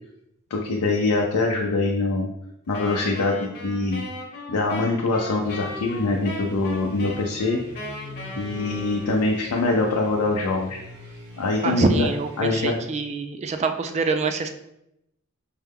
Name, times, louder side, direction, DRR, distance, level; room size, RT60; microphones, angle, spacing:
voice 1, 0.5-2.3 2.7-4.0 4.5-7.6 8.4-10.8 11.4-12.1 12.4-12.7, left 3 dB, 90° left, -1 dB, 0.5 m, -23 dB
Wind instrument woodwind instrument, 2.7-9.6, left 1 dB, 45° left, 0.9 m, -37 dB
sound 1, 5.4-13.2, equal, 60° right, 0.8 m, -44 dB
voice 2, 11.6-14.5, right 4 dB, 30° right, 7 dB, 0.3 m, -25 dB
4.6 x 2.2 x 3.4 m, 0.81 s
head